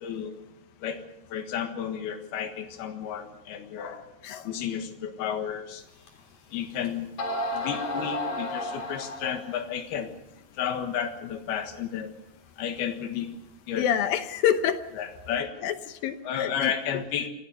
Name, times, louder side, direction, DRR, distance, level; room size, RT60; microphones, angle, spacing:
voice 1, 0.0-0.3 0.8-1.0 1.3-5.8 6.5-7.1 7.5-10.1 10.6-12.1 12.6-13.3 13.7-13.9 15.0-15.5 16.2-17.3, left 8 dB, 90° left, 7 dB, 3.5 m, -32 dB
sound 1, 6.1-6.2 6.8-6.9 7.2-9.6, left 1 dB, 50° left, 4.7 m, -32 dB
voice 2, 13.8-14.8 15.6-15.7 16.0-16.7, left 9 dB, 75° left, 10 dB, 2.6 m, -26 dB
26.5 x 16.5 x 6.9 m, 0.88 s
omnidirectional pair, 4.4 m